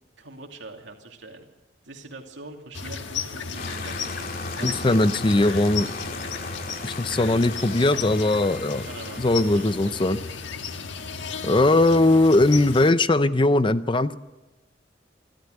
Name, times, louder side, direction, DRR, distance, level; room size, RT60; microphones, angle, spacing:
voice 1, 0.2-1.5 1.8-5.2 6.1-6.2 8.7-9.9, right 2 dB, 75° right, 3 dB, 2.6 m, -43 dB
sound 1, 2.7-12.9, left 5 dB, 80° left, 1.4 m, -34 dB
sound 2, 3.5-10.4, left 3 dB, 50° left, 2.1 m, -37 dB
voice 2, 4.6-5.9 6.8-8.9 9.2-10.2 11.4-14.2, left 2 dB, 25° left, 13 dB, 0.6 m, -20 dB
sound 3, 8.1-10.7 12.1-12.7, left 1 dB, ahead, 6.3 m, -53 dB
26.5 x 13.0 x 7.9 m, 1.1 s
head